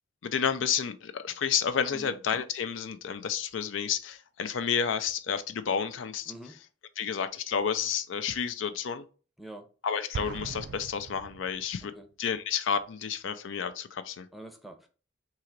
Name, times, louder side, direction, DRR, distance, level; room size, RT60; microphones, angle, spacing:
voice 1, 0.2-6.3 7.0-9.0 9.8-11.9 12.2-14.3, left 7 dB, 70° left, 0.4 m, -30 dB
Explosion, 10.1-12.0, right 5 dB, 50° right, 0.3 m, -40 dB
voice 2, 14.3-14.9, right 1 dB, ahead, 0.6 m, -45 dB
3.8 x 2.9 x 4.4 m
head